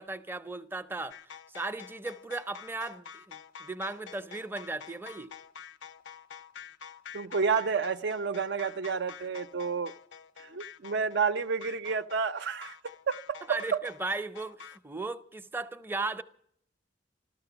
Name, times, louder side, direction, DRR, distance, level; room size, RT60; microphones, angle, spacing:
voice 1, 0.0-5.3 13.5-16.2, right 3 dB, 10° right, 0.6 m, -37 dB
sound 1, 1.1-14.8, left 7 dB, 70° left, 0.5 m, -48 dB
voice 2, 7.1-9.9 10.4-12.8 13.1-13.4 13.7-13.8, right 5 dB, 65° right, 0.6 m, -30 dB
14.0 x 13.5 x 7.0 m
head